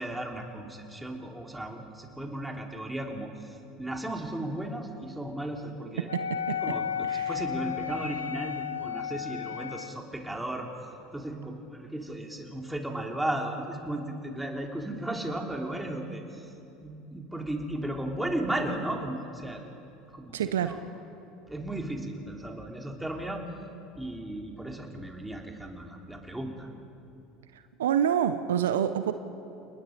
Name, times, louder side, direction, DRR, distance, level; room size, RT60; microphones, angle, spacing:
voice 1, 0.0-6.1 6.6-10.7 11.1-16.5 16.8-19.6 20.1-20.9 21.5-23.4 24.0-26.7, right 1 dB, 5° right, 1 dB, 3.3 m, -35 dB
Wind instrument woodwind instrument, 6.1-10.0, left 9 dB, 90° left, 0.4 m, -33 dB
voice 2, 6.1-6.6 7.1-7.3 20.3-20.8 27.8-29.1, right 9 dB, 80° right, 11 dB, 0.8 m, -27 dB
30.0 x 19.0 x 5.2 m, 2.8 s
hypercardioid pair, 75°, 0 cm